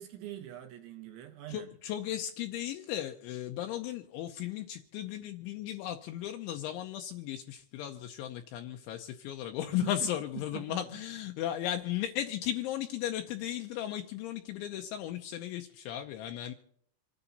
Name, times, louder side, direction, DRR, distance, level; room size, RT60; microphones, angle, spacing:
voice 1, 0.0-1.8 9.6-10.1 10.4-11.0, right 12 dB, 70° right, 5 dB, 3.5 m, -44 dB
voice 2, 1.5-16.5, left 12 dB, 80° left, 5 dB, 2.9 m, -36 dB
27.5 x 10.0 x 4.0 m, 0.66 s
omnidirectional pair, 5.9 m